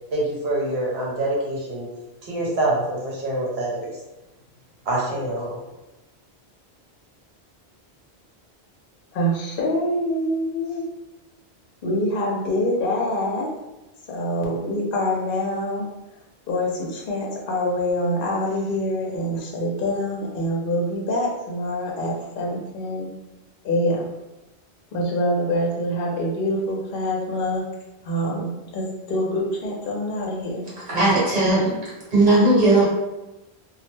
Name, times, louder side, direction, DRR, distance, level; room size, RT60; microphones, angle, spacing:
voice 1, 0.1-1.9 2.2-3.9 4.9-5.5, right 1 dB, 70° right, -4 dB, 1.0 m, -25 dB
voice 2, 9.1-10.8 11.8-13.5 14.1-15.9 16.5-23.1 23.6-24.1 24.9-27.6 28.0-30.7, left 1 dB, 60° left, -2 dB, 0.7 m, -25 dB
voice 3, 30.9-31.7 32.1-32.8, right 2 dB, 45° right, -7 dB, 1.2 m, -17 dB
2.3 x 2.0 x 3.1 m, 1.0 s
omnidirectional pair, 1.1 m